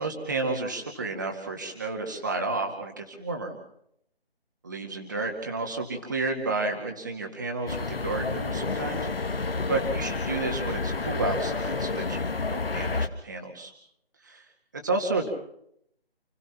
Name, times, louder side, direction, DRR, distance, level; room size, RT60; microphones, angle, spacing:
voice 1, 0.0-3.6 4.6-13.7 14.2-14.4 14.7-15.3, right 3 dB, 20° right, 2 dB, 2.0 m, -31 dB
sound 1, 7.7-13.1, left 3 dB, 65° left, 1.7 m, -30 dB
30.0 x 15.5 x 5.9 m, 0.71 s
figure-of-eight pair, 180°, 31 cm